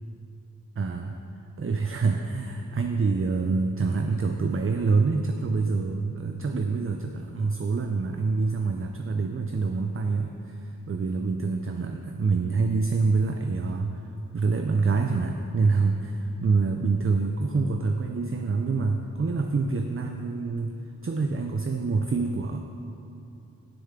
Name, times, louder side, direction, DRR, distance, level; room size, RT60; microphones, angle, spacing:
voice 1, 0.8-1.2 1.6-20.8 21.0-22.6, right 4 dB, 35° right, 5 dB, 0.5 m, -26 dB
16.5 x 6.8 x 3.7 m, 2.8 s
wide cardioid pair, 60°, 36 cm